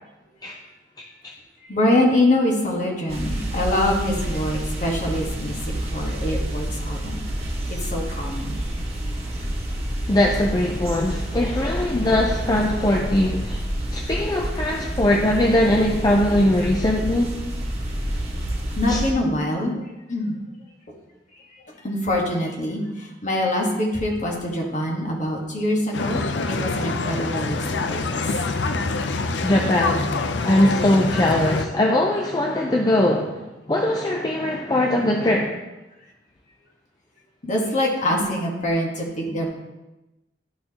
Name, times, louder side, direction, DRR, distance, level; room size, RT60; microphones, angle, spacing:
voice 1, 1.7-7.2 7.7-8.6 18.8-20.4 21.5-28.2 35.3-35.4 37.4-39.5, left 1 dB, 45° left, -1 dB, 1.5 m, -24 dB
sound 1, 3.1-19.1, right 1 dB, 35° right, 1.5 m, -28 dB
voice 2, 10.1-13.6 13.9-17.3 18.9-19.0 29.4-35.5, left 1 dB, 25° left, 0 dB, 0.5 m, -21 dB
sound 2, 25.9-31.7, left 3 dB, 80° left, 0.5 m, -25 dB
12.0 x 4.3 x 2.9 m, 1.0 s
head